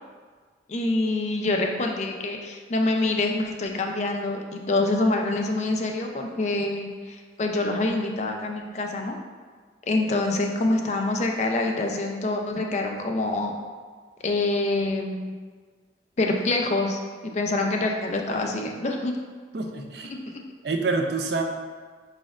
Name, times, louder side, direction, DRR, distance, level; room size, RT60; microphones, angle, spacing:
voice 1, 0.7-9.2 9.9-13.5 14.2-15.3 16.2-19.1 20.1-20.2, left 2 dB, 40° left, 2 dB, 0.4 m, -26 dB
voice 2, 19.5-20.1 20.6-21.4, right 3 dB, 65° right, 4 dB, 0.4 m, -27 dB
4.7 x 4.1 x 2.4 m, 1.5 s
head